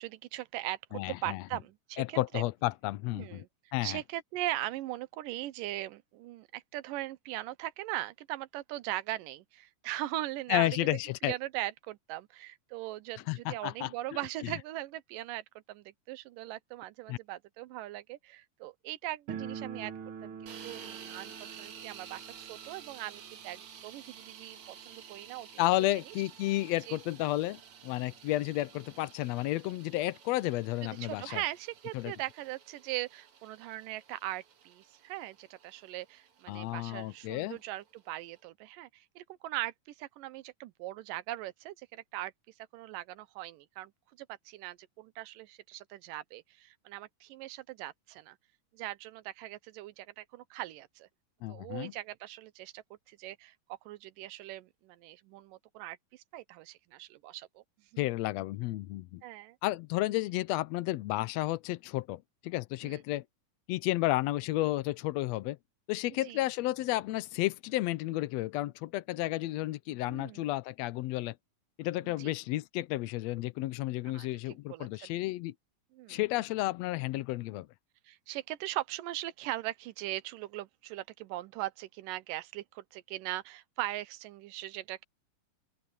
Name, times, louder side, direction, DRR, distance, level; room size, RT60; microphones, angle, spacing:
voice 1, 0.0-0.8 1.2-2.4 3.1-3.5 3.8-10.9 11.2-19.9 20.2-21.3 21.6-25.6 26.1-26.2 26.9-27.0 30.8-42.3 42.7-43.9 44.2-48.4 48.7-51.1 51.5-57.6 57.9-58.1 59.2-59.6 62.8-63.0 66.2-66.4 70.1-70.5 72.0-72.3 74.1-75.2 75.9-76.2 78.1-85.0, right 15 dB, 90° right, 2.4 m, -40 dB
voice 2, 0.9-1.4 2.0-3.4 3.7-4.0 10.5-11.3 13.3-13.9 14.4-14.5 17.1-17.2 25.6-31.4 31.9-32.1 36.5-37.6 51.4-51.9 58.0-59.2 59.6-63.2 63.7-65.6 65.9-71.3 71.8-75.5 76.1-77.7, left 17 dB, 85° left, 1.5 m, -32 dB
sound 1, 19.3-26.0 26.2-26.3 26.6-26.7 27.4-27.5 27.8-29.0, right 7 dB, 45° right, 2.3 m, -46 dB
sound 2, 20.5-38.4, right 8 dB, 60° right, 3.0 m, -52 dB
open air
omnidirectional pair, 3.7 m